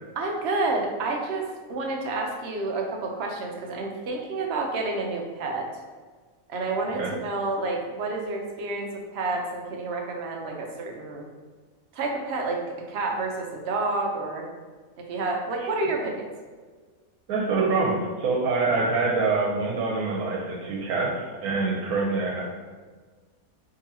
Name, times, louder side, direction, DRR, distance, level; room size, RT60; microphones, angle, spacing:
voice 1, 0.2-1.4 1.7-5.7 6.5-11.3 11.9-12.6 12.9-14.4 15.1-16.3, right 3 dB, 60° right, 1 dB, 0.7 m, -29 dB
voice 2, 17.3-22.5, right 3 dB, 85° right, -2 dB, 1.2 m, -25 dB
3.9 x 2.8 x 2.7 m, 1.4 s
omnidirectional pair, 1.5 m